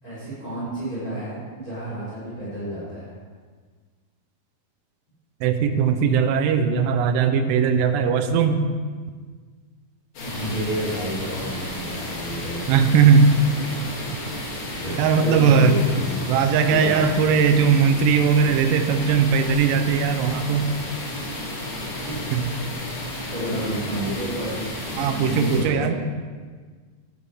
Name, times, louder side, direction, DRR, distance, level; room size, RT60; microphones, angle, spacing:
voice 1, 0.0-3.2 10.2-12.7 14.8-16.2 16.7-17.7 22.0-22.7 23.3-25.9, right 1 dB, 25° left, -9 dB, 4.0 m, -30 dB
voice 2, 5.4-8.6 12.7-13.4 15.0-15.8 16.3-20.7 22.3-22.5 25.0-26.0, right 6 dB, 80° right, 8 dB, 2.3 m, -19 dB
sound 1, 10.2-25.6, left 1 dB, 60° left, 3.8 m, -32 dB
15.0 x 11.5 x 3.5 m, 1.5 s
omnidirectional pair, 4.1 m